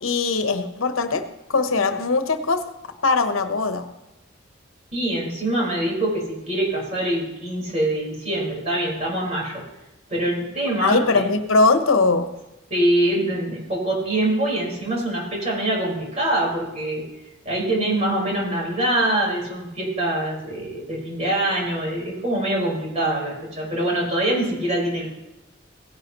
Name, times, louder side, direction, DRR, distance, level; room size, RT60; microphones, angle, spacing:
voice 1, 0.0-2.7 3.0-3.8 10.8-12.3 17.7-17.8, left 3 dB, 85° left, 9 dB, 0.9 m, -21 dB
voice 2, 4.9-9.6 10.1-11.3 12.7-17.0 17.4-25.1, right 1 dB, 35° right, -3 dB, 4.6 m, -24 dB
16.5 x 10.5 x 3.0 m, 1.0 s
head